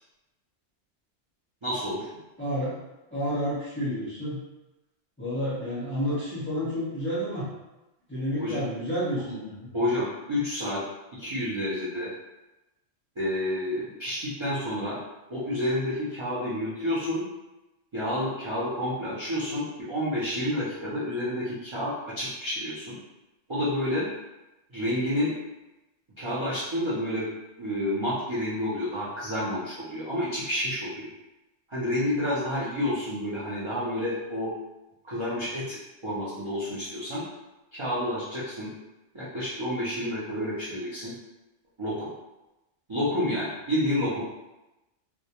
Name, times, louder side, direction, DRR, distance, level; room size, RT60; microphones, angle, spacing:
voice 1, 1.6-2.1 8.4-8.6 9.7-10.8 11.2-12.1 13.2-15.0 15.3-17.3 17.9-23.0 23.5-24.1 24.7-25.3 26.2-27.2 27.6-31.1 31.7-34.5 35.0-35.8 36.0-37.2 37.7-38.7 39.1-41.1 41.8-42.1 42.9-44.2, left 1 dB, 50° right, -10 dB, 0.3 m, -29 dB
voice 2, 2.4-2.8 3.1-4.4 5.2-7.5 8.1-9.7, equal, 15° left, -10 dB, 0.4 m, -30 dB
2.2 x 2.1 x 2.8 m, 1.0 s
omnidirectional pair, 1.3 m